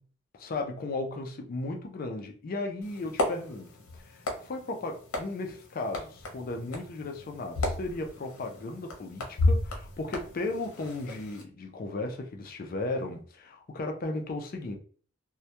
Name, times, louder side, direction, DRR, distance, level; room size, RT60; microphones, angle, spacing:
voice 1, 0.3-14.8, left 2 dB, 40° left, 0.4 m, -35 dB
sound 1, 2.8-11.4, left 2 dB, 90° left, 0.7 m, -34 dB
2.2 x 2.1 x 2.8 m
head